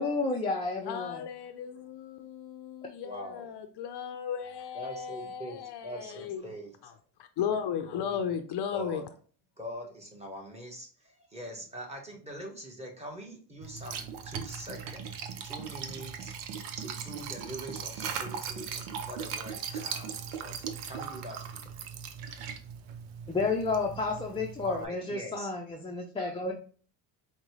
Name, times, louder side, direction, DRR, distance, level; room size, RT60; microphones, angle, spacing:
voice 1, 0.0-1.2 23.3-26.5, left 3 dB, 10° left, 0.5 m, -31 dB
voice 2, 0.9-6.4 7.4-9.0, left 8 dB, 55° left, 0.6 m, -35 dB
voice 3, 3.0-3.5 4.7-7.0 7.9-8.4 8.7-9.1 9.6-16.4 16.7-20.6 20.9-21.6 24.6-25.5, equal, 15° right, 1.2 m, -43 dB
Liquid, 13.6-24.9, right 7 dB, 85° right, 0.7 m, -39 dB
5.2 x 2.2 x 3.1 m
cardioid pair, 100°, 48 cm